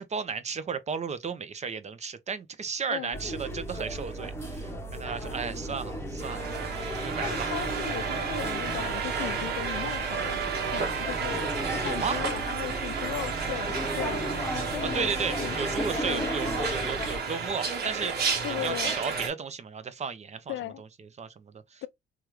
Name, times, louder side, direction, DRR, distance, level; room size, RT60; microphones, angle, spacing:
voice 1, 0.0-6.5 7.0-7.5 11.9-12.2 14.9-20.9 21.2-21.8, right 6 dB, 35° right, 0.6 m, -34 dB
sound 1, 3.1-17.2, equal, 10° left, 0.8 m, -35 dB
sound 2, 6.2-19.3, right 5 dB, 55° right, 1.4 m, -32 dB
Trumpet, 6.2-14.8, right 12 dB, 85° right, 0.4 m, -39 dB
voice 2, 7.2-14.3 14.7-15.1 15.4-15.6 16.0-16.3 18.4-19.0 20.5-20.8 21.8-21.9, left 14 dB, 75° left, 0.4 m, -37 dB
2.9 x 2.4 x 3.1 m
cardioid pair, 90°, 20 cm